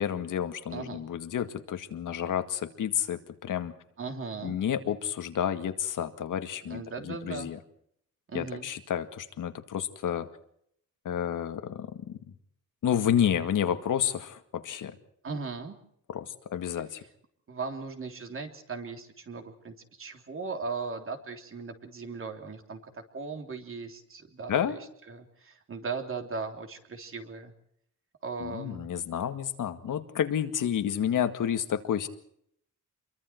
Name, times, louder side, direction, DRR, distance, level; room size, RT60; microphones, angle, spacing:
voice 1, 0.0-3.7 4.4-7.6 8.3-10.3 11.1-12.2 12.8-15.0 16.1-17.0 24.5-24.8 28.4-32.1, left 9 dB, 80° left, 8 dB, 2.0 m, -30 dB
voice 2, 0.7-1.0 4.0-4.6 6.7-7.5 8.3-8.7 15.2-15.8 17.5-24.8 25.1-27.5 28.2-28.8, right 4 dB, 45° right, 5 dB, 3.3 m, -38 dB
28.5 x 23.0 x 4.6 m, 0.69 s
wide cardioid pair, 160°, 31 cm